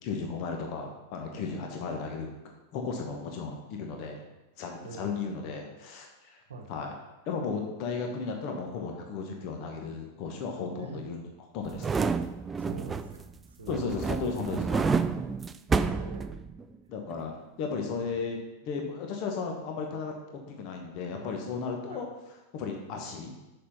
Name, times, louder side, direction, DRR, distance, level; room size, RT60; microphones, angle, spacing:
voice 1, 0.0-2.3 2.7-4.2 4.6-6.4 6.7-6.9 7.3-11.2 11.5-12.0 13.7-14.9 16.9-22.1 22.5-23.3, left 5 dB, 40° left, 2 dB, 1.2 m, -35 dB
voice 2, 4.8-5.3 6.5-6.7 10.8-11.0 12.6-14.0 15.7-16.4 18.0-18.2 21.9-22.0, right 3 dB, 65° right, 4 dB, 1.0 m, -44 dB
sound 1, 11.6-13.3 13.7-16.8 17.1-17.2, right 5 dB, 15° right, 0.3 m, -29 dB
6.7 x 5.8 x 5.5 m, 1.0 s
figure-of-eight pair, 90°, 0 cm